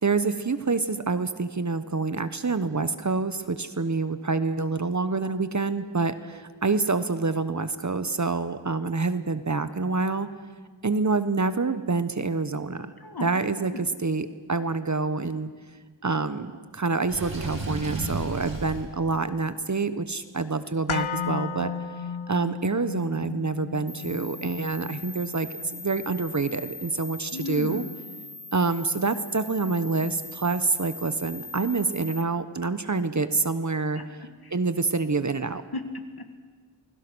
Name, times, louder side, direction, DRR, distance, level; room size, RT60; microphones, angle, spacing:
voice 1, 0.0-10.3 10.8-12.9 13.2-15.5 16.0-21.7 22.3-27.8 28.5-34.0 34.5-35.6, right 3 dB, 35° right, 12 dB, 1.1 m, -27 dB
voice 2, 13.0-13.3 13.7-13.8 27.3-28.0 33.9-34.1 34.4-34.5 35.7-36.4, left 3 dB, 50° left, 7 dB, 2.3 m, -35 dB
Water / Sink (filling or washing), 17.1-18.9, right 2 dB, 75° right, 5.4 m, -33 dB
sound 1, 20.9-29.0 29.3-29.4, left 6 dB, 85° left, 1.0 m, -36 dB
sound 2, 23.9-32.2, left 1 dB, 15° left, 2.4 m, -41 dB
28.5 x 21.5 x 6.3 m, 1.5 s
wide cardioid pair, 85°, 47 cm